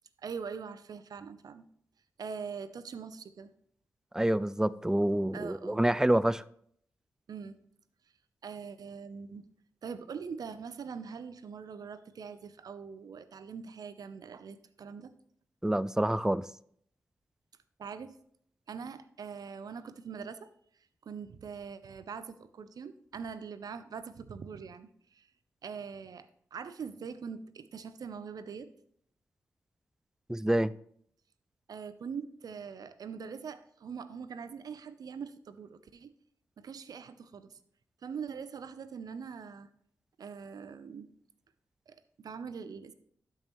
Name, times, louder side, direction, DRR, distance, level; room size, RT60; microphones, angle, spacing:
voice 1, 0.2-1.7 2.2-3.5 5.3-5.8 7.3-7.5 8.4-9.4 9.8-15.1 17.8-18.1 18.7-20.5 21.0-25.3 25.6-28.7 31.7-36.1 36.6-37.6 38.0-39.7 40.2-41.1 41.9-42.9, right 6 dB, 70° right, 0.6 m, -43 dB
voice 2, 4.1-6.4 15.6-16.4 30.3-30.7, right 1 dB, 10° right, 0.3 m, -27 dB
12.0 x 5.5 x 3.0 m
supercardioid pair, 40°, 7 cm